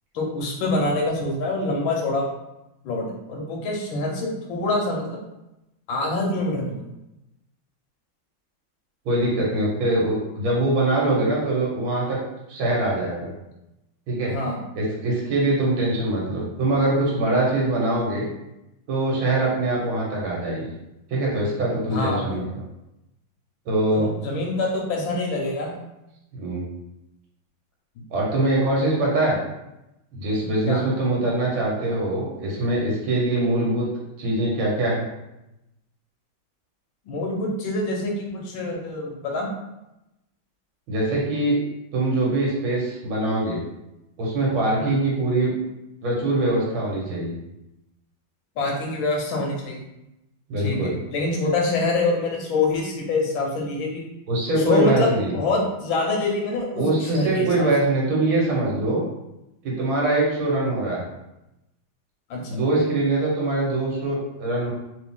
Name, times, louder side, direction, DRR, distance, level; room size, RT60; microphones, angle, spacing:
voice 1, 0.1-2.2 2.8-5.2 5.9-6.8 14.2-14.6 21.8-22.4 23.9-25.8 30.7-30.8 37.1-39.5 44.8-45.0 48.6-49.8 50.6-54.0 54.6-57.7 62.3-62.6, left 2 dB, 75° left, 0 dB, 1.5 m, -25 dB
voice 2, 9.1-12.2 12.5-13.3 14.1-14.3 14.8-18.2 18.9-20.7 21.1-22.6 23.7-24.1 26.3-26.6 28.1-29.4 30.1-33.9 34.2-35.1 40.9-41.6 41.9-43.6 44.2-45.5 46.0-47.3 50.5-50.9 54.3-55.4 56.8-59.0 59.6-61.0 62.5-64.7, right 2 dB, 75° right, -4 dB, 2.0 m, -23 dB
4.0 x 2.8 x 3.6 m, 0.91 s
omnidirectional pair, 2.3 m